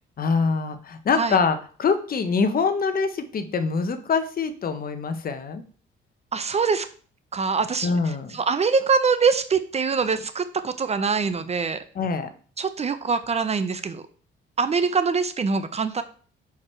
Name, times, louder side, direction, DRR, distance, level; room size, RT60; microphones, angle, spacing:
voice 1, 0.2-5.6 7.8-8.3 11.9-12.3, left 5 dB, 45° left, 10 dB, 0.9 m, -24 dB
voice 2, 6.3-6.9 7.3-7.9 8.3-11.8 12.6-14.0 14.6-16.0, right 5 dB, 35° right, 12 dB, 0.6 m, -23 dB
6.2 x 4.7 x 4.4 m, 0.42 s
cardioid pair, 90°, 20 cm